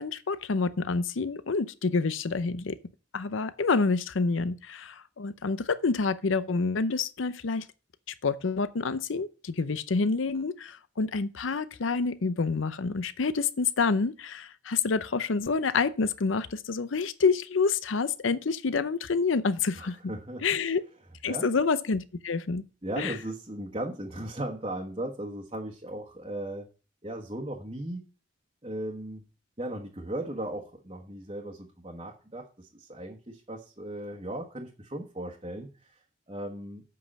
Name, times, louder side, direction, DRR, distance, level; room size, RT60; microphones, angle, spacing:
voice 1, 0.0-2.8 3.1-7.7 8.2-20.0 20.4-20.8 21.2-22.7 23.0-23.1, left 4 dB, 90° left, 0.6 m, -28 dB
voice 2, 19.8-20.6 21.3-21.5 22.8-26.7 27.0-28.0 28.6-29.2 29.6-36.8, right 1 dB, 30° right, 1.2 m, -37 dB
7.6 x 5.5 x 7.3 m
head